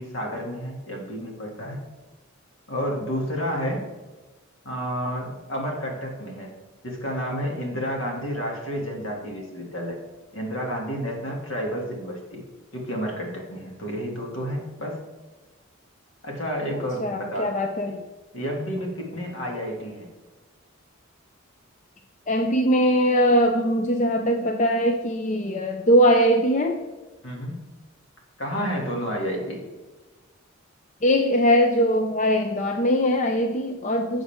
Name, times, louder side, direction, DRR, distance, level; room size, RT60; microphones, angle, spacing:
voice 1, 0.0-1.8 2.7-3.8 4.6-6.5 6.8-10.0 10.3-12.4 12.7-15.0 16.2-17.5 17.8-17.9 18.3-20.1 27.2-27.6 28.4-29.6, equal, 65° left, 0 dB, 2.4 m, -30 dB
voice 2, 17.0-18.0 22.3-26.8 31.0-34.2, equal, 35° left, 5 dB, 0.5 m, -21 dB
13.0 x 7.1 x 3.6 m, 1.2 s
head